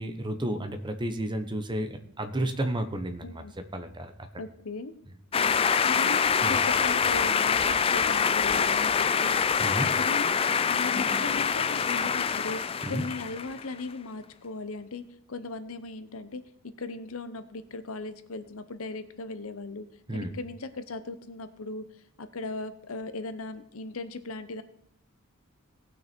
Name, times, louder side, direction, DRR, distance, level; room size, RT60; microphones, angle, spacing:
voice 1, 0.0-3.4 3.7-4.3 6.4-6.6 9.6-9.9 12.8-13.0 20.1-20.3, right 1 dB, 20° right, 9 dB, 1.0 m, -32 dB
voice 2, 3.2-3.5 4.4-4.9 5.3-5.6 5.8-6.2 6.5-9.4 9.8-10.3 10.7-24.6, left 3 dB, 75° left, 12 dB, 0.8 m, -38 dB
sound 1, 5.3-13.6, left 6 dB, 25° left, 0.4 m, -25 dB
18.0 x 6.2 x 4.4 m, 0.72 s
head